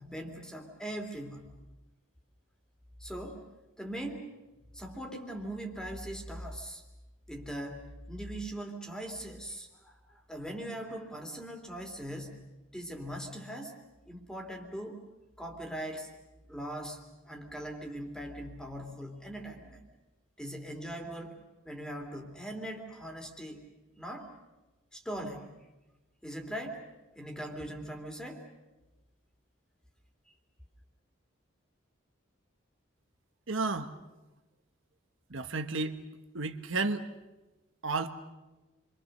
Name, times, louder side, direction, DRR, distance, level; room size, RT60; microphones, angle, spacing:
voice 1, 0.0-1.5 3.0-3.4 3.8-4.3 4.7-6.8 7.3-12.4 12.7-13.8 14.1-15.0 15.4-16.1 16.5-17.0 17.2-19.9 20.4-21.4 21.6-23.6 24.0-24.3 24.9-25.5 26.2-26.8 27.1-28.5, right 1 dB, 5° left, 3 dB, 2.8 m, -40 dB
voice 2, 33.5-33.9 35.3-36.0 36.3-37.1 37.8-38.1, right 3 dB, 75° right, 7 dB, 1.3 m, -32 dB
28.5 x 24.5 x 6.7 m, 1.1 s
head